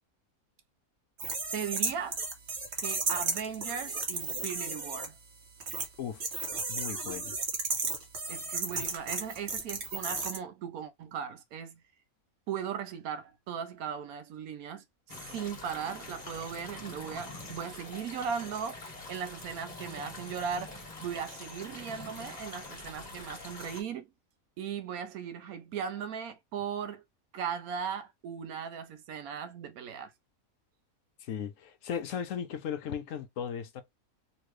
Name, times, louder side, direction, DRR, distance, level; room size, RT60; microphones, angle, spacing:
sound 1, 1.2-5.1 5.6-5.9 6.2-10.4, right 4 dB, 50° right, 1.1 m, -33 dB
voice 1, 1.5-2.2 2.8-5.2 8.3-11.8 12.5-18.8 19.1-24.1 24.6-27.0 27.3-30.1, right 7 dB, 80° right, 1.1 m, -38 dB
voice 2, 6.7-7.4 31.2-33.8, left 8 dB, 70° left, 0.9 m, -36 dB
sound 2, 15.1-23.8, left 2 dB, 30° left, 1.2 m, -45 dB
3.0 x 2.9 x 3.1 m
omnidirectional pair, 1.5 m